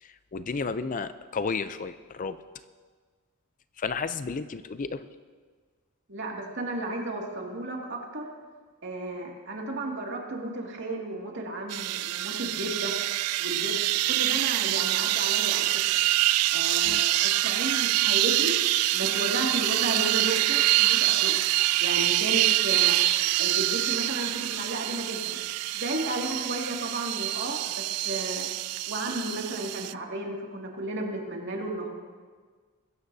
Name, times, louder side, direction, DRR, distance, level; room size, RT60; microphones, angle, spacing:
voice 1, 0.0-2.4 3.8-5.1 16.8-17.0, left 4 dB, 35° left, 12 dB, 0.4 m, -32 dB
voice 2, 6.1-8.3 8.8-12.9 13.4-15.7 16.5-18.5 18.9-21.4 21.8-23.0 23.4-25.4 25.7-28.5 28.9-31.9, right 1 dB, 55° right, -1 dB, 2.2 m, -33 dB
sound 1, 11.7-29.9, right 16 dB, 85° right, 0.3 m, -25 dB
21.5 x 16.0 x 2.7 m, 1.5 s
head